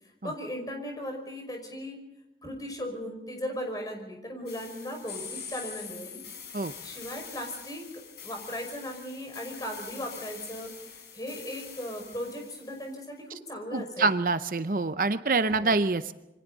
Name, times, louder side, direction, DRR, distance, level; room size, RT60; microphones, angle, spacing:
voice 1, 0.2-2.0 2.4-6.2 6.8-14.1 15.4-15.8, equal, 20° left, 3 dB, 5.5 m, -37 dB
sound 1, 4.5-12.9, left 7 dB, 70° left, 6.6 m, -44 dB
voice 2, 13.7-16.1, right 3 dB, 50° right, 11 dB, 0.7 m, -26 dB
28.0 x 24.5 x 4.0 m, 0.93 s
head